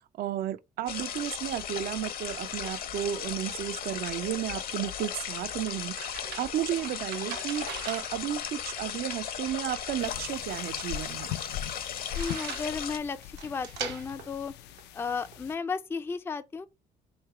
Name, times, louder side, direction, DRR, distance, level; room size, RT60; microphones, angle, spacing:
voice 1, 0.2-11.4, right 12 dB, 60° right, 0.5 m, -33 dB
sound 1, 0.9-13.0, left 9 dB, 60° left, 0.7 m, -36 dB
sound 2, 4.6-15.4, right 7 dB, 80° right, 1.0 m, -44 dB
sound 3, 10.0-15.6, left 12 dB, 85° left, 0.4 m, -41 dB
voice 2, 12.1-14.5 14.9-16.7, left 5 dB, 15° left, 0.3 m, -34 dB
3.2 x 3.2 x 4.7 m
cardioid pair, 110°, 17 cm